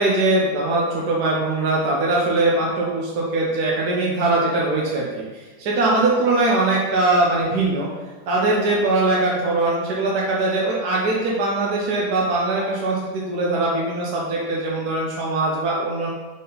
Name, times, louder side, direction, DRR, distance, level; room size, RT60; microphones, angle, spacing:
voice 1, 0.0-5.2 5.6-7.9 8.3-16.1, right 2 dB, 60° right, -4 dB, 1.3 m, -21 dB
5.9 x 5.6 x 3.9 m, 1.3 s
omnidirectional pair, 2.1 m